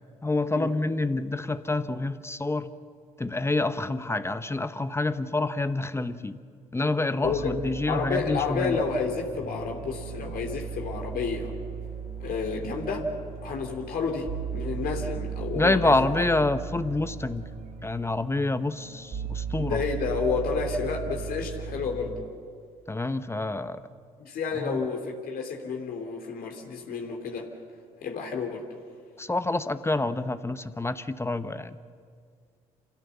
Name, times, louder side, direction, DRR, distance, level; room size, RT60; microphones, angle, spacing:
voice 1, 0.2-2.7 3.2-6.4 6.7-8.8 15.5-17.4 17.8-19.8 22.9-23.8 24.6-24.9 29.2-31.8, left 2 dB, 15° left, 12 dB, 1.0 m, -27 dB
voice 2, 7.2-7.6 7.9-11.5 12.2-13.1 13.4-16.3 19.6-22.1 24.2-27.5 28.0-28.6, left 5 dB, 55° left, 1 dB, 3.1 m, -30 dB
sound 1, 7.2-22.2, right 6 dB, 50° right, 4.6 m, -37 dB
28.0 x 16.0 x 7.1 m, 2.1 s
hypercardioid pair, 55°, 18 cm